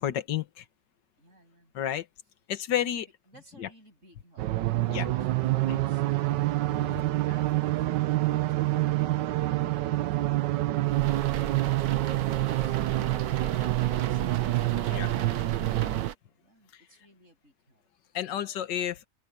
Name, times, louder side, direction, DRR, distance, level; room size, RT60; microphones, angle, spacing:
voice 1, 0.0-0.4 1.7-2.0 2.5-3.1 4.9-5.1 5.7-5.8 14.9-15.1 18.1-19.0, left 10 dB, 90° left, 1.7 m, -30 dB
voice 2, 1.2-1.7 2.7-9.1 14.1-17.8, right 1 dB, 40° right, 8.2 m, -56 dB
sound 1, 4.4-16.1, right 16 dB, 85° right, 1.4 m, -27 dB
sound 2, 10.8-16.1, right 9 dB, 65° right, 1.3 m, -36 dB
open air
omnidirectional pair, 1.9 m